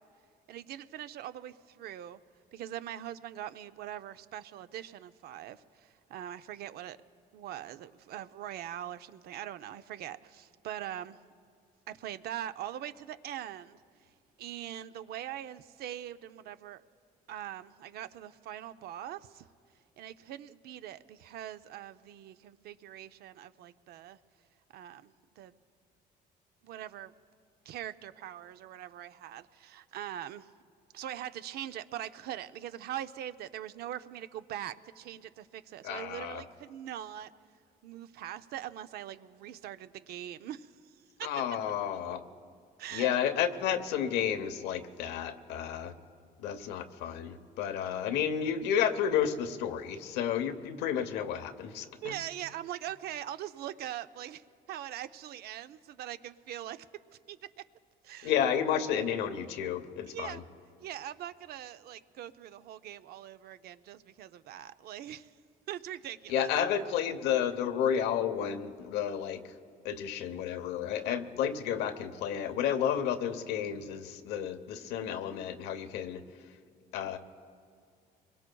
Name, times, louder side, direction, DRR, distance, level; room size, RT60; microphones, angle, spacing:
voice 1, 0.5-2.2 2.5-7.0 7.3-11.2 11.9-13.8 14.4-16.8 17.3-19.5 20.0-24.2 24.7-25.5 26.6-27.1 27.7-30.5 30.9-37.3 37.8-41.3 42.8-43.1 52.0-56.9 57.3-57.6 58.0-58.3 60.1-60.4 60.8-65.3 65.7-66.5 66.8-67.0, right 11 dB, 70° right, 12 dB, 0.5 m, -42 dB
voice 2, 35.8-36.4 41.2-42.2 42.9-45.9 46.4-52.2 58.2-60.4 66.3-69.5 69.8-76.2 76.9-77.2, left 9 dB, 90° left, 8 dB, 0.9 m, -31 dB
25.5 x 22.0 x 2.3 m, 2.3 s
cardioid pair, 110°, 17 cm